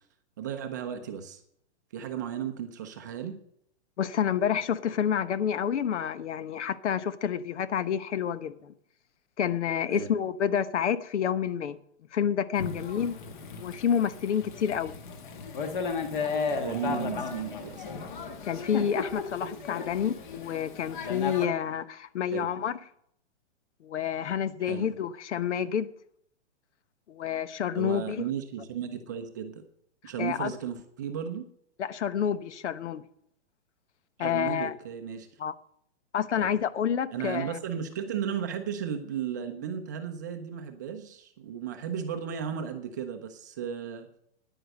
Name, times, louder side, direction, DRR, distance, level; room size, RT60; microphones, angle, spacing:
voice 1, 0.4-1.4 1.9-3.4 9.9-10.1 16.6-17.9 22.3-22.5 24.6-24.9 27.7-29.5 30.0-31.5 34.2-35.3 36.4-36.5 37.1-44.1, right 8 dB, 15° right, 0.5 m, -35 dB
voice 2, 4.0-8.7 9.4-11.8 12.1-13.1 13.6-14.9 18.4-22.8 23.8-25.9 27.1-28.2 30.2-30.5 31.8-33.0 34.2-34.7 35.4-35.5 36.1-37.6, left 8 dB, 85° left, 1.0 m, -29 dB
Thunder / Rain, 12.6-21.5, left 5 dB, 45° left, 1.6 m, -35 dB
10.0 x 9.2 x 6.4 m
hypercardioid pair, 175°, 34 cm